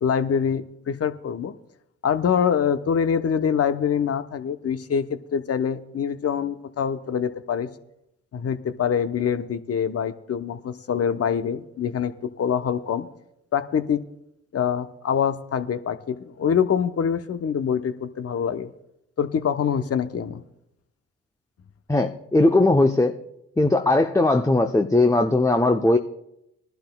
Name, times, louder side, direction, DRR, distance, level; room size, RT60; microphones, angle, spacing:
voice 1, 0.0-1.5 2.0-7.7 8.3-13.1 13.5-14.0 14.5-18.7 19.2-20.4, left 7 dB, 45° left, 11 dB, 0.9 m, -25 dB
voice 2, 21.9-23.1 23.6-26.0, left 2 dB, 10° left, 5 dB, 0.7 m, -19 dB
21.5 x 11.5 x 2.3 m, 0.81 s
hypercardioid pair, 45°, 34 cm